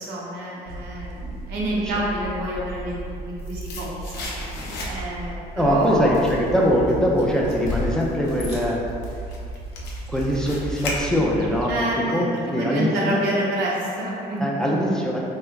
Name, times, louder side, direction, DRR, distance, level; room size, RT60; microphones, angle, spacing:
voice 1, 0.0-4.3 4.9-6.2 11.7-14.7, right 1 dB, 85° right, -5 dB, 0.8 m, -28 dB
sound 1, 0.7-11.8, right 2 dB, 65° right, 0.4 m, -35 dB
sound 2, 3.1-5.3 5.7-11.5 11.8-11.9, left 2 dB, 75° left, 0.6 m, -37 dB
voice 2, 5.5-8.8 10.1-11.7 12.1-12.3 12.5-12.9 14.4-15.2, equal, 5° left, -3 dB, 0.4 m, -22 dB
sound 3, 6.1-6.4 7.6-9.3 9.8-10.1, left 2 dB, 45° left, 0.9 m, -33 dB
3.2 x 2.1 x 3.4 m, 2.5 s
cardioid pair, 110°, 17 cm